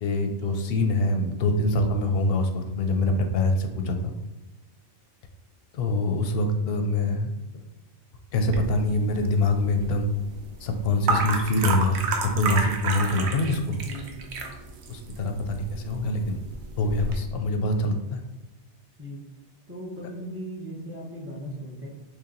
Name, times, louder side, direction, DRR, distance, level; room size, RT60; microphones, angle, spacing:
voice 1, 0.0-4.1 5.7-7.6 8.3-10.1 10.6-13.8 14.9-16.4 16.8-18.2, left 2 dB, 65° left, 5 dB, 0.7 m, -25 dB
sound 1, 8.5-17.2, right 4 dB, 70° right, 0.9 m, -31 dB
voice 2, 13.8-14.3 19.0-19.2 19.7-21.9, equal, 15° right, -4 dB, 0.8 m, -37 dB
3.1 x 2.9 x 3.7 m, 1.0 s
omnidirectional pair, 1.2 m